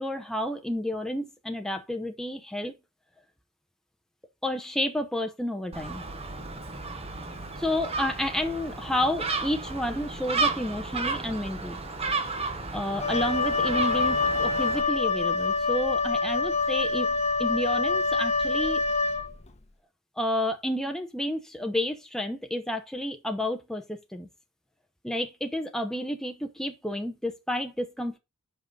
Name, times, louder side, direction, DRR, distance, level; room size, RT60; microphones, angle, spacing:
voice 1, 0.0-2.7 4.4-6.0 7.6-11.8 12.7-18.8 20.2-24.3 25.0-28.2, left 1 dB, ahead, 0.8 m, -30 dB
Gull seagull, 5.7-14.8, right 3 dB, 30° right, 1.2 m, -33 dB
Wind instrument woodwind instrument, 13.0-19.6, left 4 dB, 30° left, 1.0 m, -26 dB
5.9 x 5.5 x 5.3 m
head